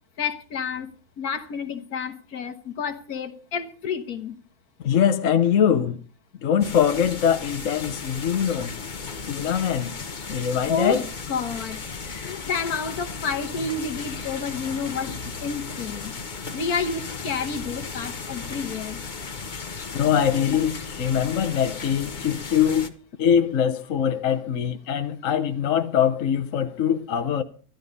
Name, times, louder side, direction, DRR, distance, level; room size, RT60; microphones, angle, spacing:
voice 1, 0.2-0.9 1.2-4.4 10.7-16.1 16.5-19.0, left 5 dB, 70° left, 1.8 m, -30 dB
voice 2, 4.8-6.0 6.4-8.7 9.3-10.0 10.3-11.0 14.9-15.0 19.9-22.9 23.2-27.4, left 8 dB, 55° left, 1.3 m, -23 dB
sound 1, 6.6-22.9, left 4 dB, 35° left, 1.0 m, -35 dB
13.5 x 13.0 x 5.4 m
omnidirectional pair, 1.7 m